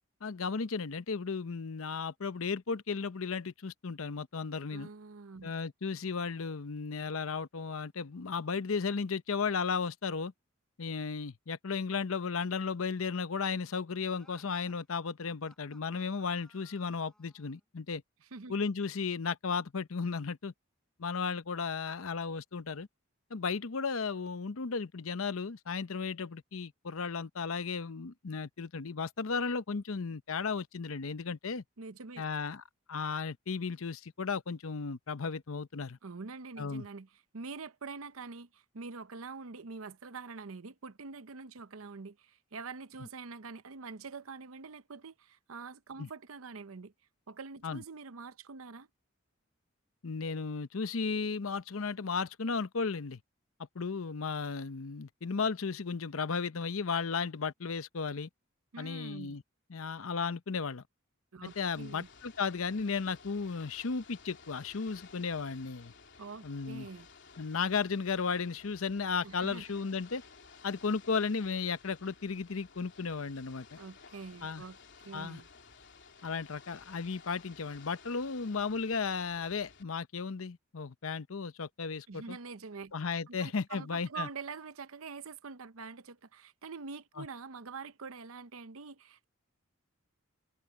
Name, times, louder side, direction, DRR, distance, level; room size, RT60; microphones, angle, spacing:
voice 1, 0.2-4.9 5.4-10.3 10.8-18.0 18.5-20.5 21.0-22.9 23.3-31.6 32.2-32.6 32.9-36.0 36.6-36.9 46.0-46.1 47.6-47.8 50.0-53.2 53.7-58.3 58.8-59.4 59.7-60.8 61.4-65.9 66.4-66.9 67.4-70.2 70.6-73.8 74.4-74.6 75.1-75.4 76.2-82.4 82.9-84.3 87.2-87.3, left 5 dB, 75° left, 0.7 m, -35 dB
voice 2, 4.7-5.5 18.3-18.5 31.8-32.2 36.0-46.9 47.3-48.9 58.7-59.4 61.3-62.1 66.2-67.1 69.2-69.8 73.8-74.8 75.0-75.5 82.1-82.9 83.3-89.2, right 4 dB, 75° right, 0.8 m, -45 dB
sound 1, 14.1-17.6, equal, 5° left, 6.5 m, -63 dB
Ocean / Boat Water vehicle, 61.5-79.8, left 5 dB, 60° left, 3.2 m, -56 dB
head